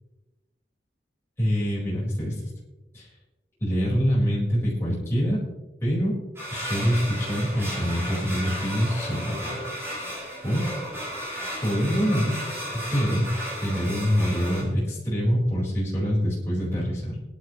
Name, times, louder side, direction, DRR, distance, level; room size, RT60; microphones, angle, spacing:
voice 1, 1.4-2.3 2.9-3.1 3.6-5.4 5.8-6.1 6.5-9.6 10.4-10.7 11.6-12.3 12.7-13.3 13.6-17.2, equal, 15° left, -9 dB, 4.8 m, -25 dB
sound 1, 6.4-14.6, equal, 15° right, 6.0 m, -34 dB
23.5 x 11.0 x 3.2 m, 1.1 s
head